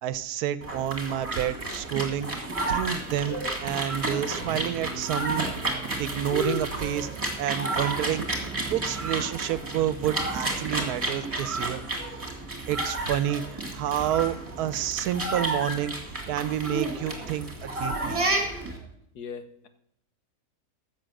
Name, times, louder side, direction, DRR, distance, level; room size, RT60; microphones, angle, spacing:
voice 1, 0.0-5.5 6.0-8.3 8.7-11.8 12.7-15.9 16.3-18.2, right 11 dB, 85° right, 15 dB, 1.1 m, -29 dB
sound 1, 0.6-18.8, right 2 dB, 20° right, 2.1 m, -31 dB
voice 2, 19.1-19.7, left 6 dB, 85° left, 9 dB, 1.5 m, -39 dB
15.0 x 6.4 x 6.4 m, 0.76 s
omnidirectional pair, 1.6 m